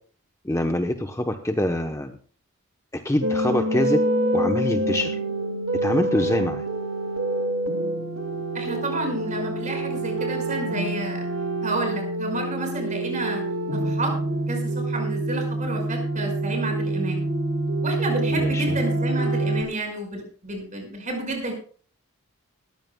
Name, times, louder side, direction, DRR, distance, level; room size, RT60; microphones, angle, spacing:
voice 1, 0.4-2.2 2.9-4.0 4.3-5.2 5.8-6.6 18.4-18.7, left 1 dB, 15° left, 5 dB, 0.8 m, -25 dB
sound 1, 3.2-19.6, right 1 dB, 75° right, 2.3 m, -26 dB
voice 2, 8.5-11.3 11.6-13.4 13.7-14.1 14.5-17.3 17.8-21.5, right 2 dB, 35° right, 4 dB, 5.2 m, -30 dB
20.0 x 14.5 x 2.2 m, 0.43 s
head